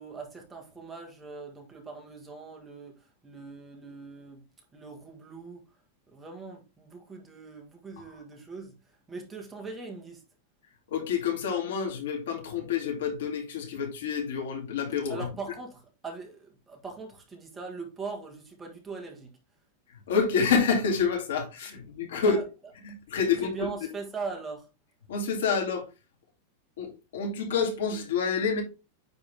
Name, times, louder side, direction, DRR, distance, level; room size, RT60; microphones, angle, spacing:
voice 1, 0.0-4.4 4.7-5.6 6.1-8.8 9.1-10.2 15.1-19.3 21.6-21.7 22.1-22.4 23.4-24.7, right 4 dB, 10° right, 1.4 m, -41 dB
voice 2, 10.9-15.2 19.9-22.4 22.8-23.7 25.1-25.8 26.8-28.6, left 5 dB, 90° left, 2.4 m, -28 dB
9.4 x 3.5 x 3.4 m
supercardioid pair, 175°, 0 cm